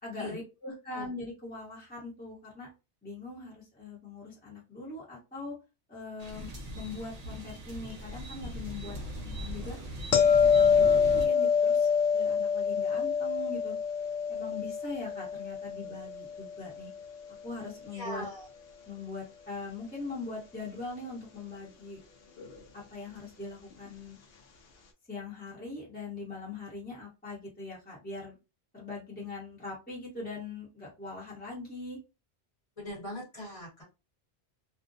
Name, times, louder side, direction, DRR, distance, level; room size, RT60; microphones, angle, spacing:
voice 1, 0.0-2.7 3.0-5.5 5.9-6.5 6.7-9.8 10.2-13.7 14.3-16.9 17.4-18.2 18.9-22.0 22.9-24.2 25.1-28.4 28.7-32.0, left 3 dB, 10° left, -5 dB, 0.8 m, -41 dB
sound 1, 6.2-11.3, equal, 45° right, 0.6 m, -40 dB
sound 2, 10.1-17.1 22.4-22.5, left 6 dB, 65° left, 0.8 m, -26 dB
voice 2, 17.9-18.5 32.8-33.8, left 1 dB, 35° left, -4 dB, 1.1 m, -40 dB
2.5 x 2.0 x 2.5 m, 0.28 s
omnidirectional pair, 1.1 m